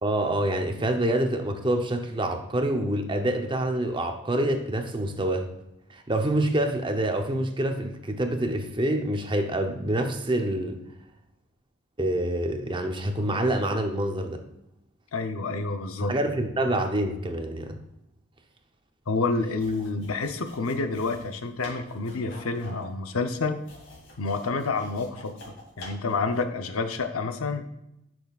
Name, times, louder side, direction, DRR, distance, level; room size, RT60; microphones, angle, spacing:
voice 1, 0.0-5.5 5.9-10.8 12.0-14.4 16.1-17.8, right 1 dB, 20° right, 5 dB, 0.7 m, -26 dB
voice 2, 15.1-16.1 19.1-23.6 24.2-27.7, left 3 dB, 75° left, 7 dB, 0.7 m, -29 dB
sound 1, 19.5-26.6, left 1 dB, 55° left, 2.4 m, -47 dB
10.5 x 6.2 x 2.4 m, 0.84 s
head